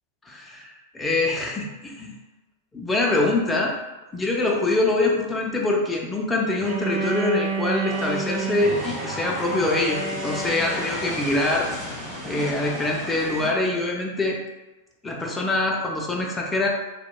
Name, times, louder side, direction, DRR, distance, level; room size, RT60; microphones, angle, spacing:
voice 1, 0.3-2.1 2.7-3.7 4.1-11.7 12.3-14.4 15.0-16.7, left 2 dB, 10° left, -1 dB, 0.4 m, -24 dB
Bowed string instrument, 6.6-11.5, right 4 dB, 45° right, 0.6 m, -30 dB
sound 1, 7.9-13.5, left 1 dB, 15° right, 1.2 m, -35 dB
2.8 x 2.1 x 2.3 m, 1.1 s
figure-of-eight pair, 95°, 0 cm